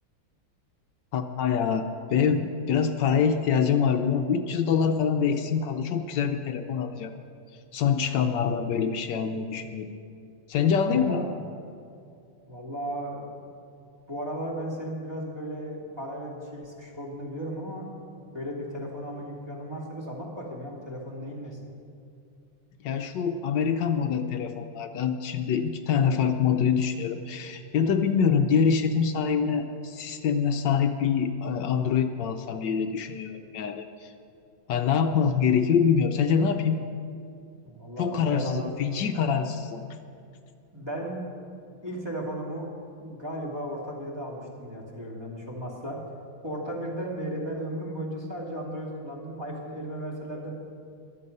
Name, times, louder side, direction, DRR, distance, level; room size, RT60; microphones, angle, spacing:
voice 1, 1.1-7.1 7.7-9.9 10.5-11.3 22.8-34.1 34.7-36.8 38.0-39.8, left 6 dB, 70° left, 7 dB, 1.2 m, -25 dB
voice 2, 10.9-11.3 12.5-13.4 14.1-17.9 18.3-21.6 37.7-38.8 40.7-41.2 41.8-42.7 43.0-46.0 46.4-50.5, equal, 10° right, -3 dB, 2.3 m, -35 dB
21.5 x 7.9 x 5.4 m, 2.5 s
omnidirectional pair, 2.3 m